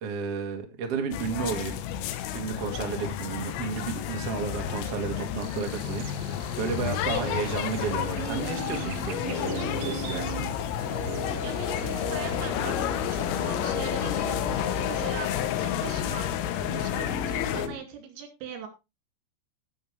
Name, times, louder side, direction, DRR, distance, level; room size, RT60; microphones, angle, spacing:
voice 1, 0.0-1.8 2.3-10.5, right 6 dB, 45° right, 3 dB, 2.0 m, -33 dB
sound 1, 1.1-17.7, left 10 dB, 90° left, 3.7 m, -31 dB
Buzz, 5.4-15.4, right 11 dB, 65° right, 2.6 m, -42 dB
sound 2, 9.3-17.8, left 5 dB, 25° left, 4.5 m, -35 dB
voice 2, 11.0-16.3 16.7-18.7, right 8 dB, 85° right, 5 dB, 5.0 m, -41 dB
16.0 x 7.0 x 3.3 m, 0.25 s
omnidirectional pair, 5.7 m